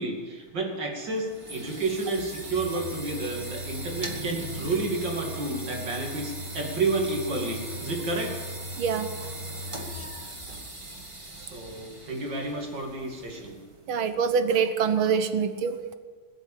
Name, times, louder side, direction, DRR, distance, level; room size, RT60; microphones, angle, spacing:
voice 1, 0.0-8.3 10.5-10.6 11.4-13.6, right 3 dB, 60° right, 1 dB, 3.3 m, -30 dB
sound 1, 1.0-13.8, right 1 dB, 15° right, 1.6 m, -38 dB
voice 2, 13.9-15.9, right 6 dB, 75° right, 10 dB, 1.9 m, -25 dB
20.5 x 8.2 x 8.6 m, 1.4 s
omnidirectional pair, 2.3 m